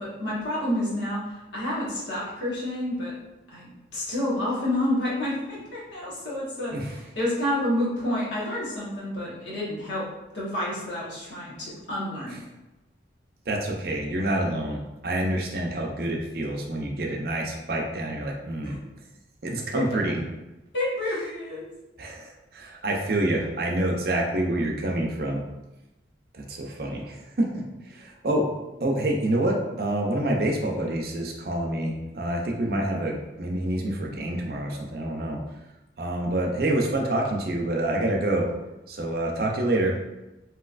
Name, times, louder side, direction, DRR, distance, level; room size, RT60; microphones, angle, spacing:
voice 1, 0.0-3.1 3.5-10.0 10.3-12.4 18.6-18.8 20.7-21.7, left 1 dB, 85° left, -6 dB, 1.2 m, -29 dB
voice 2, 13.5-18.8 19.4-20.2 22.0-25.4 26.3-28.5 28.8-35.4 36.0-38.5 38.9-39.9, right 1 dB, 55° right, 0 dB, 0.5 m, -27 dB
3.1 x 2.9 x 2.4 m, 1.0 s
head